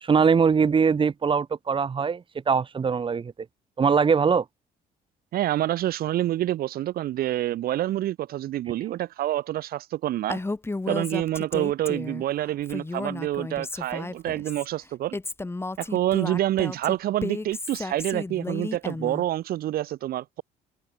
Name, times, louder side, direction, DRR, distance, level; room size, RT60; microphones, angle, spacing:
voice 1, 0.0-3.3 3.8-4.4, right 6 dB, 30° right, 1.5 m, -22 dB
voice 2, 5.3-10.4 10.9-15.2 15.8-20.4, right 13 dB, 60° right, 0.8 m, -27 dB
Female speech woman speaking, 10.3-12.2 12.6-14.7 15.1-19.3, left 2 dB, 15° left, 3.8 m, -33 dB
open air
cardioid pair, 110°, 17 cm